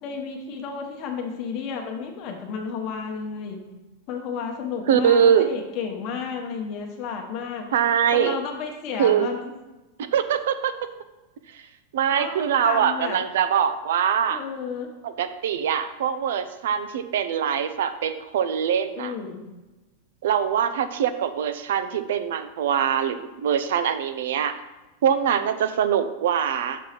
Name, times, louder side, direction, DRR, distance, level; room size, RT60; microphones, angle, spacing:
voice 1, 0.0-3.6 4.1-7.7 8.1-9.5 12.1-12.3 12.6-13.2 14.3-14.9 19.0-19.4, left 6 dB, 35° left, 2 dB, 1.1 m, -32 dB
voice 2, 4.9-5.5 7.7-8.4 9.0-9.3 10.1-10.7 11.5-11.6 11.9-14.4 15.0-19.1 20.2-24.6 25.0-26.8, right 8 dB, 70° right, 11 dB, 0.5 m, -23 dB
6.3 x 3.9 x 5.8 m, 1.1 s
supercardioid pair, 170°, 0 cm